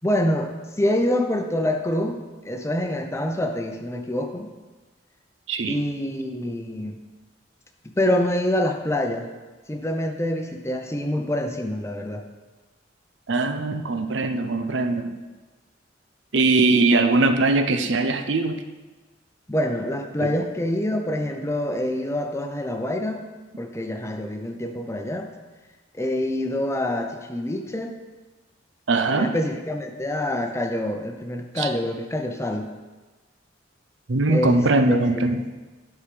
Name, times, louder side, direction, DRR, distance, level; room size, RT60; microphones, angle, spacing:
voice 1, 0.0-2.2 2.4-4.5 5.7-7.0 8.0-9.3 9.7-12.2 19.5-23.2 23.6-25.3 26.0-27.9 29.1-32.7 34.3-34.6 34.9-35.4, left 1 dB, 15° left, 4 dB, 0.7 m, -26 dB
voice 2, 5.5-5.8 13.3-15.2 16.3-18.6 28.9-29.4 31.6-31.7 34.1-35.4, right 3 dB, 80° right, 8 dB, 0.7 m, -21 dB
11.5 x 4.7 x 5.1 m, 1.3 s
head